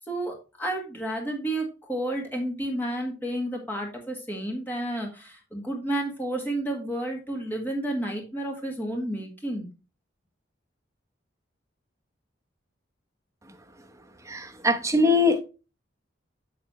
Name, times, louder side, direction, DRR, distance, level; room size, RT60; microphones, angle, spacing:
voice 1, 0.1-9.7, right 1 dB, 10° left, 1.6 m, -31 dB
voice 2, 14.3-15.4, left 2 dB, 15° right, 0.9 m, -22 dB
7.0 x 6.6 x 3.1 m
head